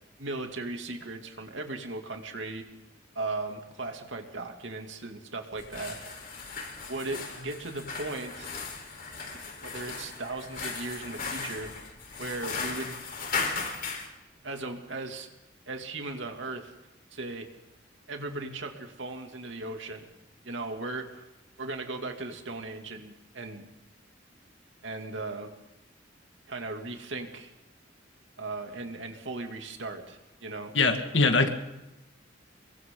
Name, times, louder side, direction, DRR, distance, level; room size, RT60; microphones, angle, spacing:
voice 1, 0.2-2.6 3.1-6.0 6.9-8.5 9.3-11.7 12.2-13.0 14.4-15.3 15.7-16.7 17.1-17.5 18.1-20.1 20.4-21.2 21.6-23.7 24.8-25.5 26.5-27.5 28.4-30.7, right 2 dB, 75° right, 3 dB, 2.8 m, -37 dB
sound 1, 5.5-14.1, left 4 dB, 50° left, 4.4 m, -37 dB
voice 2, 30.7-31.5, left 3 dB, 75° left, 5 dB, 2.3 m, -22 dB
29.0 x 23.0 x 4.0 m, 0.96 s
head